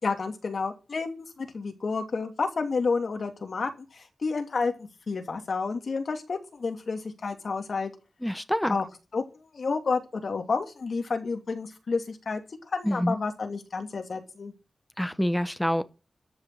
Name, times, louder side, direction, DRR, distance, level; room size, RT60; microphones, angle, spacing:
voice 1, 0.0-7.9 8.6-8.8 9.1-12.4 12.7-14.5, left 4 dB, 60° left, 2.8 m, -30 dB
voice 2, 8.2-8.8 12.8-13.2 15.0-15.8, equal, 5° left, 0.9 m, -26 dB
13.0 x 6.5 x 9.2 m
wide cardioid pair, 105°, 0 cm